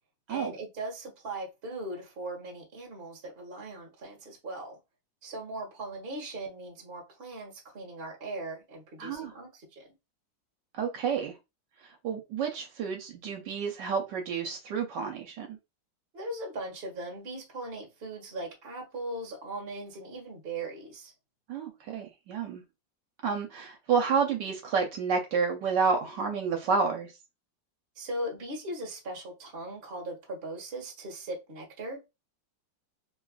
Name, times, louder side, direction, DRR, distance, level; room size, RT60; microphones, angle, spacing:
voice 1, 0.3-4.8 5.2-9.9 16.1-21.1 27.9-32.0, right 2 dB, 40° right, 1.1 m, -39 dB
voice 2, 9.0-9.3 10.8-11.4 12.0-15.6 21.5-22.6 23.2-27.1, right 5 dB, 75° right, 1.2 m, -30 dB
3.2 x 2.4 x 2.2 m
omnidirectional pair, 2.0 m